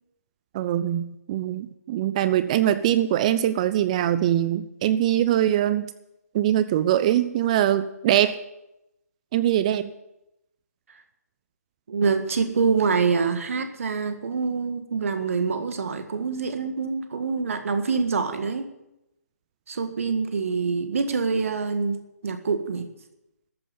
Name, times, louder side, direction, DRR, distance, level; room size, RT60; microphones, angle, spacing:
voice 1, 0.5-5.9 6.3-8.4 9.3-9.9, right 12 dB, 25° right, 13 dB, 0.5 m, -22 dB
voice 2, 11.9-18.7 19.7-22.9, right 5 dB, 55° right, 8 dB, 1.7 m, -25 dB
13.5 x 9.2 x 9.1 m, 0.89 s
figure-of-eight pair, 145°, 9 cm